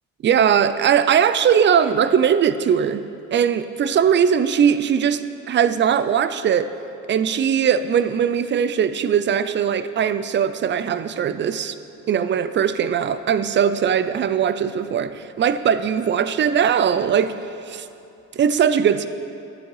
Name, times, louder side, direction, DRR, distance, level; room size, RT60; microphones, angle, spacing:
voice 1, 0.2-3.0 3.3-6.7 7.1-11.8 12.1-17.3 17.7-17.9 18.3-19.1, right 8 dB, 40° right, 13 dB, 0.4 m, -20 dB
12.0 x 7.6 x 4.7 m, 2.8 s
cardioid pair, 105°, 29 cm